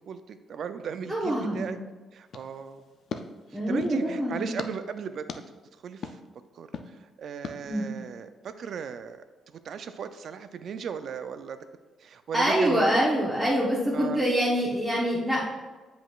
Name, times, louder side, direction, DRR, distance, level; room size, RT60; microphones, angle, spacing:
voice 1, 0.1-1.8 2.1-2.8 3.7-5.3 5.8-6.2 6.6-9.2 9.6-11.6 12.0-13.0 13.9-14.2, right 6 dB, 55° right, 10 dB, 0.4 m, -36 dB
voice 2, 1.1-1.8 3.5-4.5 7.7-7.9 12.3-15.4, equal, ahead, -7 dB, 0.9 m, -25 dB
sound 1, 2.3-4.0 4.6-4.7 5.3-5.4 6.0-6.2 6.7-6.9 7.4-7.6, left 5 dB, 55° left, 0.4 m, -39 dB
7.7 x 5.1 x 2.4 m, 1.2 s
cardioid pair, 140°, 0 cm